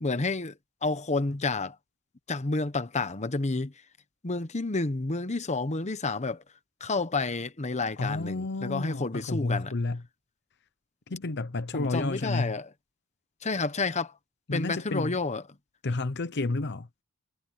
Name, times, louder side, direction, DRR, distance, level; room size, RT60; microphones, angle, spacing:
voice 1, 0.0-0.5 0.8-1.8 2.3-3.7 4.2-6.4 6.8-9.7 11.7-12.7 13.4-14.1 14.5-15.4, left 3 dB, 35° left, 1.0 m, -30 dB
voice 2, 8.0-10.0 11.1-12.6 14.5-15.2 15.8-16.9, left 2 dB, 55° left, 0.9 m, -31 dB
head